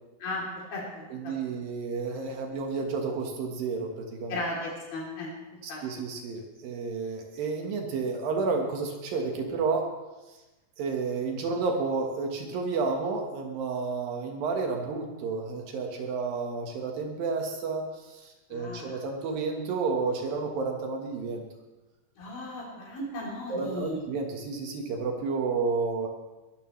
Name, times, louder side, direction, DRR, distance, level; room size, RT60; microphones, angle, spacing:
voice 1, 0.2-1.3 4.3-5.3 5.7-5.8 18.5-19.0 22.2-24.0, left 1 dB, 75° left, -4 dB, 5.0 m, -36 dB
voice 2, 1.1-4.4 5.6-9.9 10.8-21.5 23.5-26.1, right 4 dB, 75° right, 2 dB, 3.2 m, -31 dB
22.0 x 13.0 x 3.2 m, 1.1 s
omnidirectional pair, 4.1 m